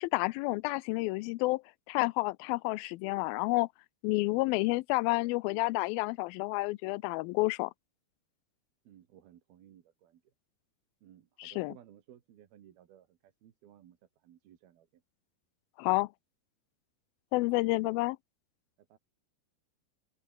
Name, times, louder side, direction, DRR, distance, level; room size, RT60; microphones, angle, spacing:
voice 1, 0.0-1.6 1.9-3.7 4.0-7.7 11.4-11.7 15.8-16.1 17.3-18.2, left 22 dB, 85° left, 2.4 m, -30 dB
voice 2, 8.9-10.2 11.0-15.0 17.8-18.1 18.8-19.0, right 11 dB, 80° right, 3.7 m, -58 dB
open air
omnidirectional pair, 4.3 m